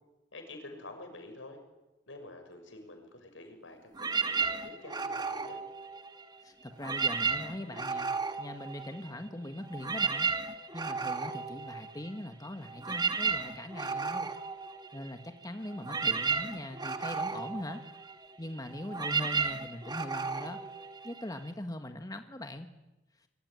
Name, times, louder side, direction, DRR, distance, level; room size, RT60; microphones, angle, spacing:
voice 1, 0.3-1.6 2.1-5.6, left 2 dB, 90° left, 5 dB, 6.7 m, -48 dB
sound 1, 3.9-6.4 6.7-9.3 9.6-21.5, right 5 dB, 20° right, 1.5 m, -34 dB
voice 2, 6.4-8.1 8.4-10.3 10.7-14.3 14.9-17.8 18.4-20.6 21.0-22.7, left 1 dB, 20° left, 7 dB, 1.6 m, -41 dB
26.0 x 23.5 x 9.7 m, 1.0 s
head